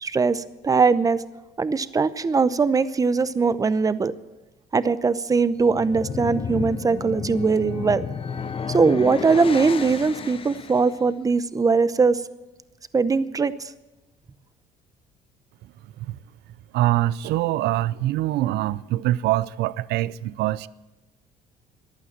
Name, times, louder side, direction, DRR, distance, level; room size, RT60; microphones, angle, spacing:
voice 1, 0.0-1.2 1.6-4.1 4.7-8.0 8.7-12.2 12.9-13.5, right 4 dB, 20° right, 0.7 m, -21 dB
sound 1, 5.6-11.0, left 6 dB, 35° left, 0.7 m, -32 dB
voice 2, 16.7-20.7, right 15 dB, 80° right, 0.5 m, -24 dB
15.0 x 11.0 x 7.4 m
cardioid pair, 110°, 17 cm